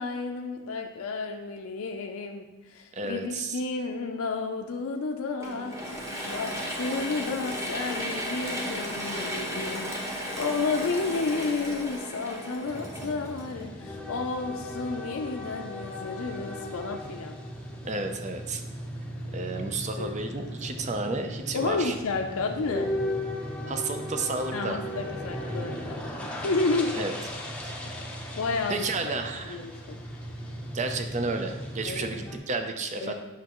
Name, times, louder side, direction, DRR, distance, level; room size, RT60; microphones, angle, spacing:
voice 1, 0.0-6.5 6.8-17.3 20.0-20.1 21.5-22.9 24.5-26.9 28.0-29.1 29.4-30.0 31.8-32.1 33.0-33.1, left 3 dB, 75° left, 2 dB, 0.5 m, -31 dB
voice 2, 3.0-3.6 17.8-18.6 19.3-21.9 23.7-24.8 26.9-27.1 27.6-27.8 28.7-29.6 30.7-33.1, right 3 dB, 35° right, 6 dB, 0.5 m, -32 dB
Mechanisms / Drill, 5.4-14.0, equal, 15° right, 1.0 m, -35 dB
sound 1, 12.7-32.4, equal, 5° left, 0.7 m, -37 dB
8.4 x 5.7 x 3.0 m, 1.1 s
head